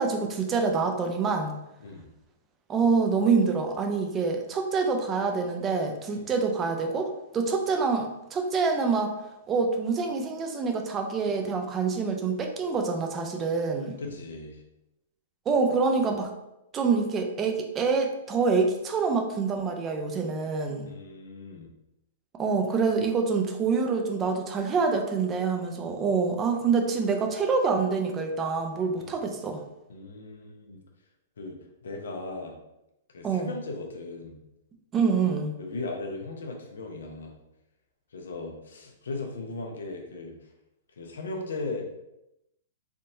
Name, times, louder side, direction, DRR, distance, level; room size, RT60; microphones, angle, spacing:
voice 1, 0.0-1.6 2.7-9.1 9.5-14.0 15.5-16.3 16.7-20.9 22.4-29.6 33.2-33.5 34.9-35.5, right 4 dB, 25° right, 4 dB, 0.7 m, -26 dB
voice 2, 14.0-14.6 20.8-21.7 29.0-29.1 29.9-30.8 31.4-32.6 33.1-34.4 35.6-37.3 38.1-40.3 41.0-41.9, left 3 dB, 70° left, 2 dB, 0.9 m, -37 dB
4.1 x 3.6 x 2.7 m, 0.88 s
figure-of-eight pair, 110°, 0 cm